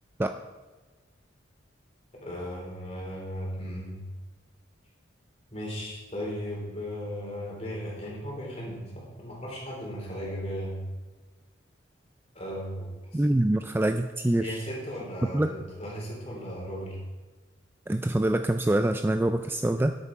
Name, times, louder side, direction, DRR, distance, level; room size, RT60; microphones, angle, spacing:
voice 1, 2.1-4.0 5.5-10.8 12.3-13.4 14.4-17.0, equal, 35° left, -3 dB, 3.8 m, -36 dB
voice 2, 13.1-14.6 15.3-15.5 17.9-19.9, right 1 dB, 10° right, 7 dB, 0.3 m, -25 dB
13.0 x 8.2 x 4.7 m, 1.2 s
head